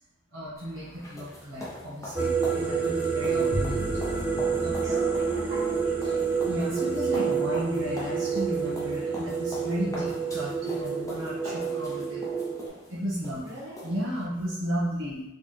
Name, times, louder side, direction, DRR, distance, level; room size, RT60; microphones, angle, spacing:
voice 1, 0.3-3.9 4.6-4.7 6.5-12.2 12.9-13.4 13.8-15.2, equal, 85° right, -7 dB, 1.4 m, -34 dB
sound 1, 0.6-14.3, left 1 dB, 15° left, 0.7 m, -42 dB
sound 2, 2.2-12.7, right 5 dB, 5° right, 0.3 m, -28 dB
Bowed string instrument, 3.5-10.0, equal, 85° left, 0.9 m, -39 dB
voice 2, 4.8-6.5 13.4-13.9, equal, 55° right, -7 dB, 1.3 m, -42 dB
4.1 x 2.3 x 3.3 m, 0.86 s
head